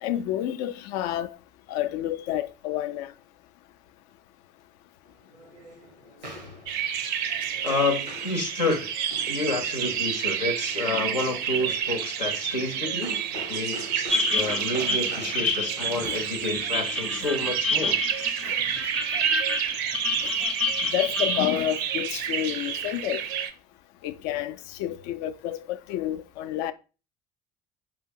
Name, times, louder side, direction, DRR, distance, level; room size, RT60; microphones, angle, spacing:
voice 1, 0.0-1.3 1.7-3.1 16.0-16.2 17.2-17.3 18.4-18.6 20.2-20.3 20.9-23.2 24.0-26.7, left 12 dB, 60° left, 0.4 m, -29 dB
sound 1, 5.1-17.5, equal, 90° right, 0.7 m, -45 dB
sound 2, 6.7-23.5, right 8 dB, 55° right, 0.5 m, -29 dB
voice 2, 7.6-8.9 9.3-13.2 13.5-18.0, left 2 dB, 90° left, 0.7 m, -29 dB
sound 3, 14.1-21.5, left 3 dB, 5° left, 0.5 m, -29 dB
4.8 x 2.8 x 2.7 m
figure-of-eight pair, 55°, 21 cm